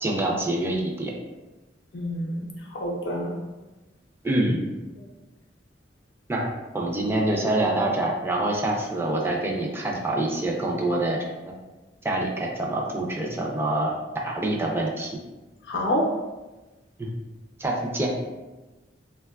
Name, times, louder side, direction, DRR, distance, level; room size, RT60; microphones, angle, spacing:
voice 1, 0.0-1.1 4.2-4.7 6.3-11.2 12.0-13.9 14.2-15.1 17.0-17.1 17.6-18.1, right 1 dB, 15° right, -1 dB, 0.3 m, -26 dB
voice 2, 1.9-3.4 15.7-16.0, left 1 dB, 70° left, -1 dB, 0.5 m, -28 dB
3.5 x 2.2 x 2.2 m, 1.1 s
head